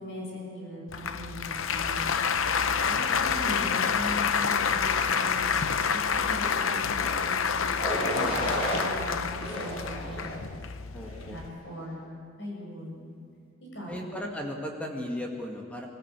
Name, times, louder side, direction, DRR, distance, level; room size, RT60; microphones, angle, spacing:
voice 1, 0.0-2.3 2.9-10.5 11.2-13.1 13.7-14.0, left 1 dB, 60° left, -1 dB, 6.8 m, -40 dB
Applause, 0.9-11.5, left 6 dB, 80° left, 0.8 m, -28 dB
sound 1, 6.9-7.2 7.8-8.8 9.4-10.4 11.0-11.4, equal, 30° left, 7.6 m, -33 dB
voice 2, 8.1-8.6 10.9-11.4 13.9-15.9, left 1 dB, 5° left, 0 dB, 2.0 m, -36 dB
23.0 x 15.0 x 8.3 m, 2.2 s
head